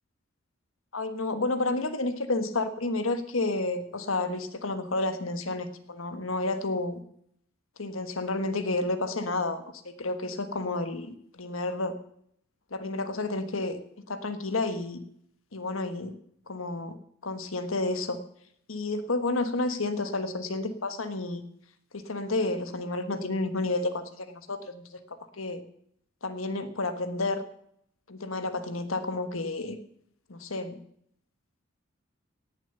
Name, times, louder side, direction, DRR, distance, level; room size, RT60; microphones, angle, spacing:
voice 1, 0.9-7.0 7.8-12.0 12.7-13.8 14.1-15.0 15.5-16.1 16.5-17.0 17.2-18.2 18.7-21.4 21.9-25.6 26.2-27.5 28.1-29.8 30.3-30.8, left 2 dB, 85° left, 10 dB, 1.4 m, -31 dB
17.5 x 7.3 x 7.9 m, 0.70 s
head